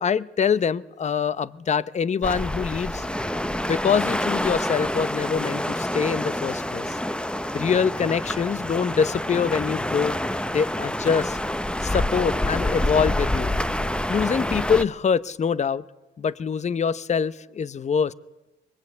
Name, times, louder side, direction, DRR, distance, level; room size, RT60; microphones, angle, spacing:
voice 1, 0.0-3.1 3.6-7.0 7.5-10.2 10.5-11.4 11.8-13.5 14.1-15.8 16.2-18.1, left 6 dB, 35° left, 18 dB, 0.8 m, -24 dB
sound 1, 2.2-14.8, left 1 dB, 5° left, 0.9 m, -27 dB
24.0 x 22.0 x 8.5 m, 1.1 s
cardioid pair, 90°, 20 cm